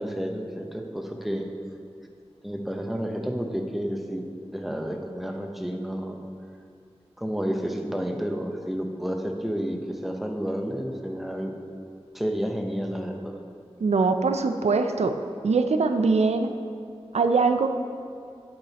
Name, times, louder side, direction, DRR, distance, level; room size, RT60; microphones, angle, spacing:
voice 1, 0.0-1.4 2.4-4.2 4.5-6.2 7.2-11.5 12.1-13.4, equal, ahead, 2 dB, 0.8 m, -30 dB
voice 2, 13.8-15.2 15.4-16.5 17.1-17.7, right 4 dB, 90° right, 7 dB, 0.4 m, -22 dB
9.2 x 7.1 x 2.9 m, 2.4 s
wide cardioid pair, 45°, 11 cm